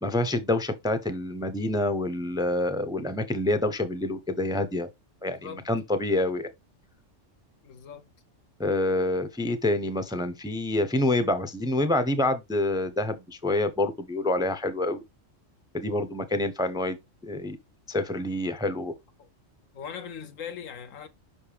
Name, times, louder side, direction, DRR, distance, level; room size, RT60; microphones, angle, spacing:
voice 1, 0.0-4.9 5.2-6.5 8.6-15.0 15.7-17.0 17.2-17.6 17.9-18.9, left 2 dB, 5° right, 0.4 m, -27 dB
voice 2, 7.6-8.1 19.2-19.3 19.7-21.1, left 7 dB, 80° left, 1.1 m, -40 dB
5.7 x 5.2 x 3.3 m
omnidirectional pair, 1.3 m